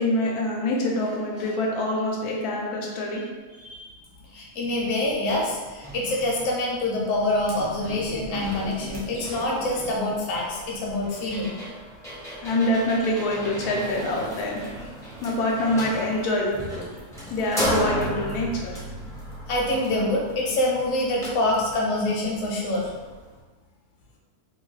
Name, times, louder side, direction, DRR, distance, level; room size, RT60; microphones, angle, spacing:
voice 1, 0.0-3.2 12.4-14.9 15.2-16.9 17.3-18.8, left 1 dB, 85° left, -1 dB, 1.1 m, -25 dB
voice 2, 3.5-3.8 4.3-11.6 19.5-22.9, left 1 dB, 65° left, -2 dB, 1.0 m, -26 dB
sound 1, 5.0-5.1 5.5-23.4, equal, 5° left, 0.3 m, -35 dB
sound 2, 7.5-10.9 11.1-11.2, right 1 dB, 60° right, 1.0 m, -40 dB
2.9 x 2.2 x 3.1 m, 1.3 s
omnidirectional pair, 1.6 m